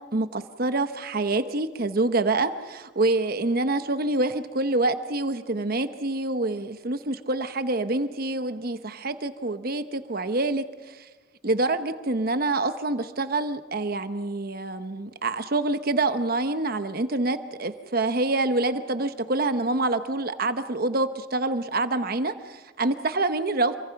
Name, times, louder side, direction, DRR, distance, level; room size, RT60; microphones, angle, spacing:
voice 1, 0.0-11.1 11.4-23.8, right 2 dB, 50° right, 10 dB, 1.0 m, -26 dB
27.0 x 24.5 x 5.9 m, 1.2 s
head